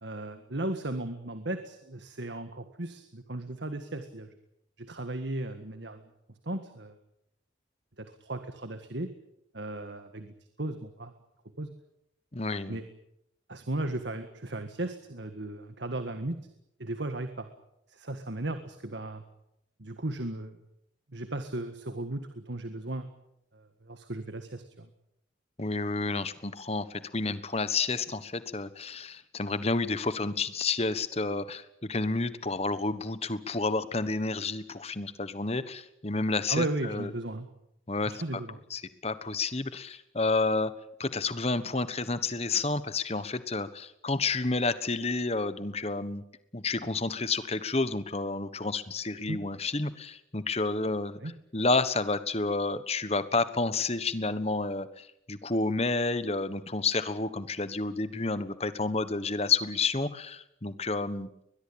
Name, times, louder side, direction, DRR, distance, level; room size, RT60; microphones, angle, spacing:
voice 1, 0.0-4.3 4.8-6.0 6.4-7.0 8.0-9.1 9.5-11.1 11.6-11.7 12.7-12.8 13.5-16.4 16.8-17.5 17.9-19.2 19.8-20.6 21.1-23.1 23.5-24.9 36.5-37.5 38.1-38.6 49.3-49.4 51.2-51.3, right 2 dB, 65° right, 8 dB, 1.7 m, -36 dB
voice 2, 12.3-12.8 25.6-37.1 37.9-38.2 38.7-40.7 41.0-46.2 46.5-51.2 51.5-61.3, left 3 dB, 30° left, 14 dB, 1.3 m, -30 dB
22.0 x 21.0 x 8.7 m, 0.81 s
head